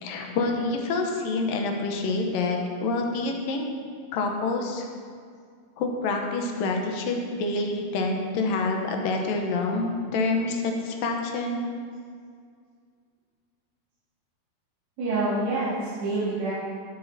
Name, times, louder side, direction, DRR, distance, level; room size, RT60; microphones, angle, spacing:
voice 1, 0.0-3.7 4.1-4.9 5.8-11.7, left 3 dB, 70° left, 2 dB, 2.6 m, -27 dB
voice 2, 15.0-16.5, right 2 dB, 75° right, -12 dB, 4.6 m, -27 dB
17.0 x 7.7 x 4.1 m, 2.1 s
omnidirectional pair, 4.5 m